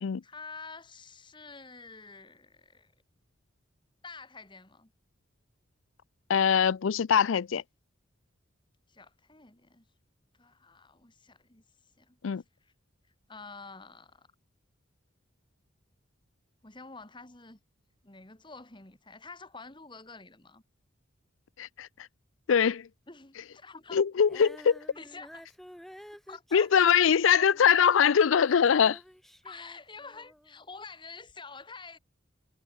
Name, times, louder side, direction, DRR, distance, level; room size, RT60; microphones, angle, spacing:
voice 1, 0.2-2.9 4.0-4.9 8.9-9.9 10.4-12.2 12.6-12.7 13.3-14.3 16.6-17.6 18.0-20.6 23.1-24.0 24.9-25.4 26.3-26.7 29.4-32.0, left 4 dB, 25° left, 2.3 m, -48 dB
voice 2, 6.3-7.6 12.2-12.4 21.6-21.9 22.5-22.9 23.9-24.8 26.5-29.0, left 7 dB, 75° left, 0.4 m, -22 dB
Female singing, 24.2-30.6 31.3-31.4, equal, ahead, 3.8 m, -51 dB
head